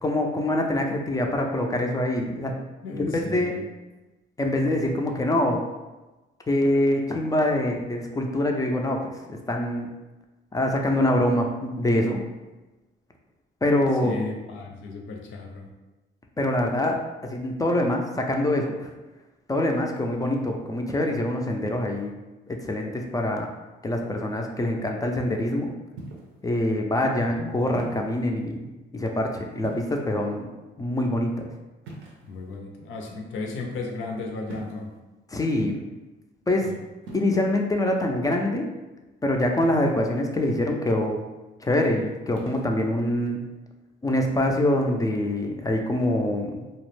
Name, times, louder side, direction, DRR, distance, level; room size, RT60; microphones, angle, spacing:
voice 1, 0.0-2.5 2.9-3.5 4.4-5.6 6.5-9.9 10.5-12.2 13.6-14.2 16.4-18.9 19.5-22.1 22.5-23.5 23.8-25.7 26.4-28.6 28.9-30.5 30.8-31.5 35.3-35.8 36.5-36.7 37.1-38.7 39.2-41.2 41.6-43.4 44.0-46.6, left 1 dB, 20° left, 2 dB, 0.3 m, -25 dB
voice 2, 2.8-3.6 14.0-15.7 27.2-27.5 32.2-34.9 36.6-36.8, left 3 dB, 75° left, 1 dB, 0.5 m, -35 dB
sound 1, 26.0-26.4 27.8-28.2 29.6-30.2 31.8-32.6 34.5-35.0 37.0-37.3 39.6-40.1 42.3-42.7, right 2 dB, 80° right, 0.6 m, -41 dB
2.3 x 2.0 x 3.1 m, 1.1 s
cardioid pair, 90°, 20 cm